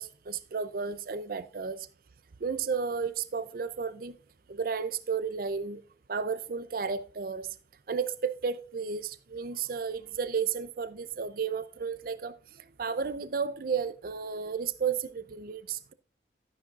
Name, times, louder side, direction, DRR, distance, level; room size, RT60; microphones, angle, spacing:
voice 1, 0.0-1.9 2.4-4.2 4.5-5.8 6.1-7.6 7.9-12.3 12.8-15.9, right 6 dB, 50° right, 0.5 m, -33 dB
13.0 x 9.8 x 2.4 m
head